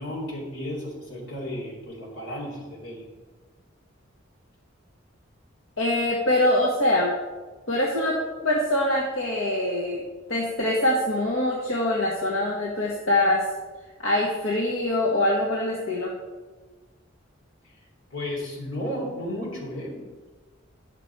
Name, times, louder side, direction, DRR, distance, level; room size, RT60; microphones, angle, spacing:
voice 1, 0.0-3.0 18.1-20.0, left 1 dB, 70° left, -2 dB, 3.0 m, -33 dB
voice 2, 5.8-7.1 7.7-8.1 8.4-10.0 10.3-13.4 14.0-16.1, left 1 dB, 90° left, -3 dB, 1.3 m, -24 dB
10.5 x 5.9 x 4.6 m, 1.3 s
head